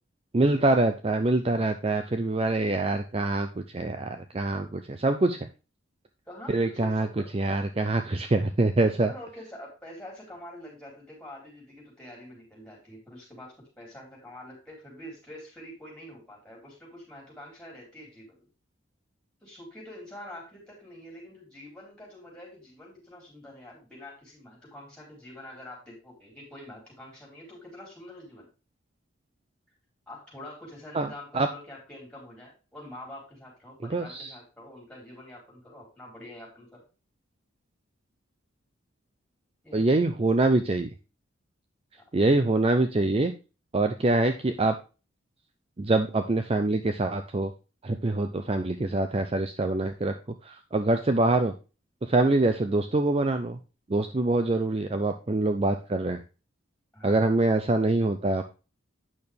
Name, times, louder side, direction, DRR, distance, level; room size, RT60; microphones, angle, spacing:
voice 1, 0.3-5.4 6.5-7.1 7.3-9.1 30.9-31.1 31.3-31.5 33.9-34.3 39.7-40.9 42.1-43.3 43.7-44.8 45.8-47.5 47.8-50.1 50.5-51.5 52.1-53.6 53.9-56.2 57.0-58.4, right 2 dB, 30° right, 7 dB, 0.5 m, -25 dB
voice 2, 6.3-7.3 8.9-18.5 19.4-28.5 30.1-36.8 39.6-39.9 56.9-57.2, left 1 dB, 5° left, -3 dB, 4.2 m, -46 dB
8.7 x 6.2 x 3.5 m, 0.32 s
head